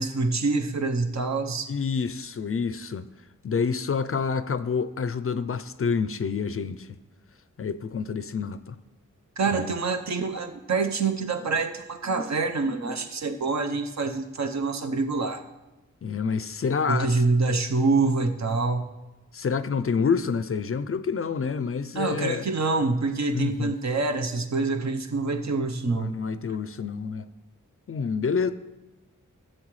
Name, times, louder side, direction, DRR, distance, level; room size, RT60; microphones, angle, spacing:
voice 1, 0.0-1.7 9.4-15.4 16.9-18.8 21.9-26.1, right 3 dB, 60° right, 6 dB, 0.8 m, -26 dB
voice 2, 1.7-3.1 3.4-6.9 7.6-8.8 9.5-9.6 16.0-17.2 19.3-22.5 23.3-23.7 25.9-27.3 27.9-28.5, left 5 dB, 45° left, 13 dB, 0.4 m, -28 dB
13.5 x 7.7 x 3.1 m, 1.1 s
wide cardioid pair, 105°, 31 cm